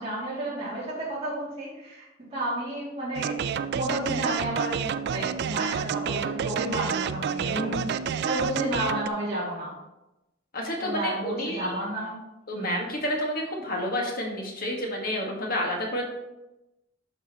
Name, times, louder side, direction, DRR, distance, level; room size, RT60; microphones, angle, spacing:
voice 1, 0.0-9.7 10.8-12.2 12.5-12.9, right 1 dB, 30° right, -9 dB, 2.5 m, -32 dB
sound 1, 3.2-9.1, right 7 dB, 55° right, 0.3 m, -29 dB
voice 2, 7.4-8.1 10.5-11.7 12.5-16.1, equal, 50° left, 0 dB, 1.7 m, -30 dB
11.0 x 5.4 x 3.0 m, 0.95 s
head